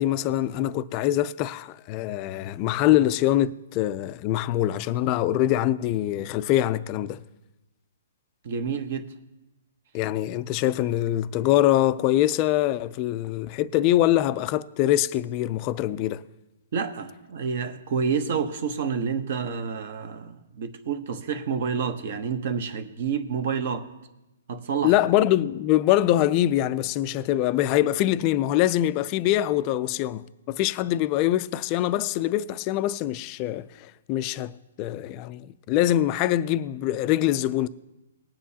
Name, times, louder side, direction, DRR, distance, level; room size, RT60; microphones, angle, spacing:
voice 1, 0.0-7.2 9.9-16.2 24.8-37.7, left 13 dB, 30° left, 0.4 m, -24 dB
voice 2, 8.4-9.1 16.7-23.9 24.5-24.9, right 6 dB, 50° right, 1.0 m, -29 dB
19.5 x 9.1 x 2.8 m
hypercardioid pair, 160°, 0 cm